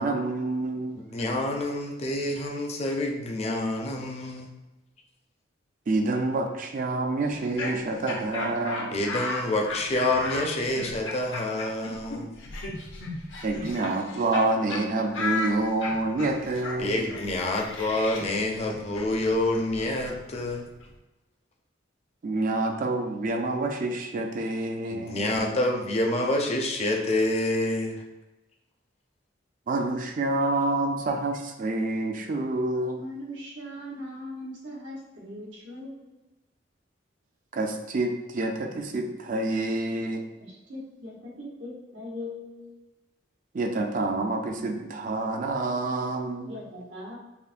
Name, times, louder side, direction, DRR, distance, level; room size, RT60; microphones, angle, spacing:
voice 1, 0.0-1.0 5.9-9.0 13.4-17.0 22.2-25.3 29.7-33.0 37.5-40.3 43.5-46.6, right 2 dB, 45° right, 4 dB, 0.4 m, -28 dB
voice 2, 1.0-4.5 8.9-12.2 16.8-20.7 24.9-28.0, left 1 dB, 35° left, 1 dB, 0.5 m, -27 dB
Laughter, 7.3-14.4 14.7-14.8 15.1-20.9, left 3 dB, 75° left, 0.7 m, -35 dB
voice 3, 32.8-36.2 40.4-42.8 46.5-47.2, left 1 dB, 80° right, -5 dB, 1.0 m, -40 dB
5.4 x 2.1 x 2.5 m, 1.0 s
head